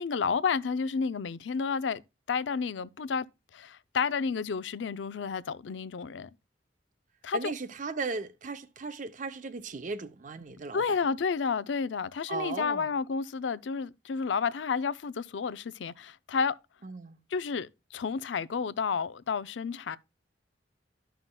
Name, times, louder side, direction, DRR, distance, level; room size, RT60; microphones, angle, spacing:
voice 1, 0.0-2.0 2.3-3.3 3.5-6.3 7.2-7.5 10.7-16.5 17.3-20.0, left 5 dB, 80° left, 0.5 m, -31 dB
voice 2, 7.3-11.0 12.3-12.9 16.8-17.2, right 4 dB, 45° right, 0.6 m, -37 dB
13.0 x 5.7 x 2.2 m
head